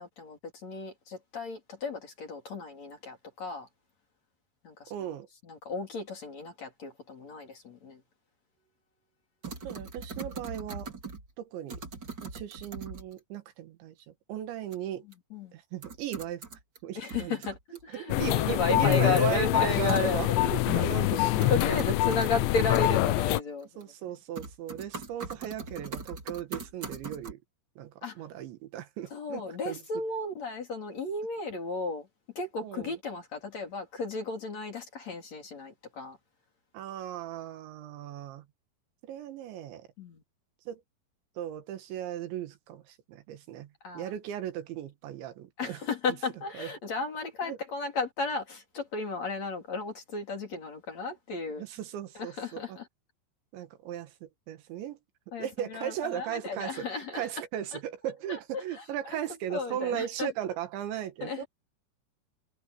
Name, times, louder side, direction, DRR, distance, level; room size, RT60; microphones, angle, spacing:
voice 1, 0.0-3.7 4.6-4.9 5.4-8.0 15.3-15.5 17.0-20.4 21.5-23.8 28.0-28.2 29.1-32.1 32.4-36.2 40.0-40.2 43.8-44.1 45.6-51.7 52.1-52.9 55.3-57.3 58.3-59.2 59.5-60.3 61.2-61.5, left 4 dB, 40° left, 4.1 m, -34 dB
voice 2, 4.9-5.3 9.6-10.9 11.4-11.8 12.2-15.0 15.5-16.4 16.8-17.4 17.9-22.4 23.8-27.4 27.8-29.8 32.6-33.0 36.7-38.5 39.0-39.9 40.7-40.8 41.4-45.8 46.6-46.7 47.5-47.6 51.6-52.8 53.5-55.0 55.4-56.9 57.1-61.4, right 11 dB, 75° right, 3.8 m, -37 dB
sound 1, 9.4-11.3 11.7-13.2 14.7-14.8 15.1-15.2 15.8-16.8 17.1-17.9 19.9-20.5 21.2-22.3 22.7-22.9 23.6-24.1 24.4-27.3, right 4 dB, 25° right, 2.8 m, -40 dB
sound 2, 18.1-23.4, left 18 dB, 80° left, 3.0 m, -25 dB
omnidirectional pair, 5.3 m